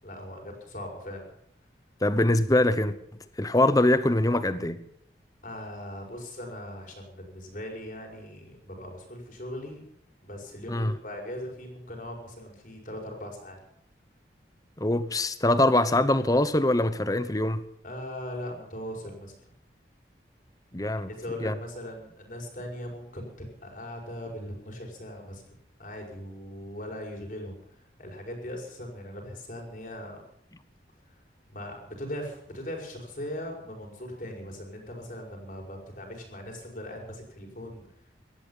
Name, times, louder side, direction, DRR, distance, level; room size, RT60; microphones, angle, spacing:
voice 1, 0.0-1.3 5.4-9.8 10.2-13.6 17.8-19.4 20.9-25.4 25.8-27.6 28.0-30.2 31.1-31.2 31.5-37.8, left 1 dB, 50° left, 5.4 m, -39 dB
voice 2, 2.0-3.0 3.4-4.8 10.7-11.0 14.8-17.6 20.7-21.1 21.4-21.6, left 1 dB, 20° left, 0.9 m, -23 dB
18.0 x 13.5 x 5.7 m
head